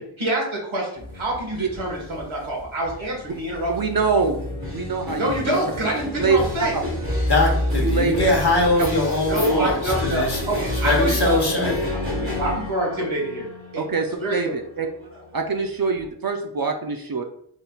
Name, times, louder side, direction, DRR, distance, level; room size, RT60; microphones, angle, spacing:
voice 1, 0.0-3.9 5.2-6.8 9.2-13.5 13.7-13.8 14.2-14.5, right 1 dB, 85° right, -2 dB, 1.5 m, -27 dB
walk through repetition room, 1.0-16.0, left 1 dB, 30° right, 1.4 m, -29 dB
voice 2, 3.7-4.4 4.7-5.4 6.2-6.7 7.7-8.3 8.8-8.9 9.5-9.7 13.8-14.9 15.3-17.2, right 4 dB, 50° right, 4 dB, 0.5 m, -24 dB
voice 3, 7.3-11.7, left 2 dB, 55° left, -1 dB, 1.2 m, -22 dB
3.9 x 3.8 x 2.3 m, 0.66 s
wide cardioid pair, 45°, 47 cm